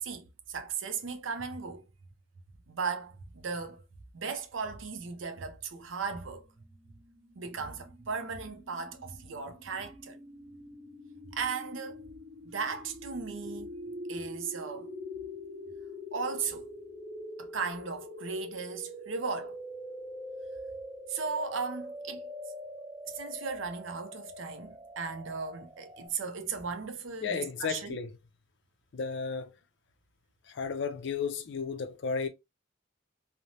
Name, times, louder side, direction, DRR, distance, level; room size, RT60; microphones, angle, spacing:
voice 1, 0.0-1.8 2.7-3.8 4.1-6.5 7.4-10.2 11.3-12.0 12.4-13.7 14.1-14.9 16.1-16.7 17.4-19.6 21.1-22.3 23.1-28.0, right 5 dB, 65° right, 0.6 m, -36 dB
sound 1, 6.9-26.1, left 1 dB, 40° right, 1.3 m, -44 dB
voice 2, 27.2-28.2 28.9-29.6 30.4-32.3, left 5 dB, 60° left, 0.5 m, -33 dB
3.2 x 2.0 x 2.6 m
head